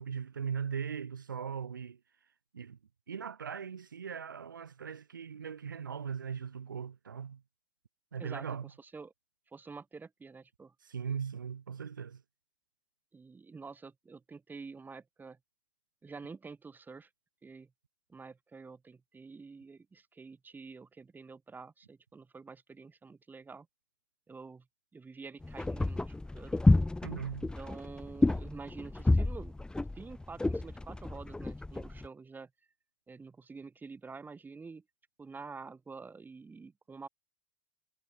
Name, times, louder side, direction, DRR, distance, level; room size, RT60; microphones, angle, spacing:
voice 1, 0.0-2.0 2.5-2.8 3.1-7.4 8.1-8.7 10.8-12.2 27.0-27.5, right 7 dB, 85° right, 2.6 m, -39 dB
voice 2, 8.2-9.1 9.5-10.7 13.1-15.4 16.0-17.1 17.4-17.7 18.1-23.7 24.3-24.6 24.9-26.6 27.6-29.6 29.9-32.5 33.1-34.8 35.2-37.1, right 4 dB, 15° right, 6.2 m, -48 dB
sound 1, 25.4-32.1, left 2 dB, 10° left, 1.4 m, -30 dB
hypercardioid pair, 85°, 10 cm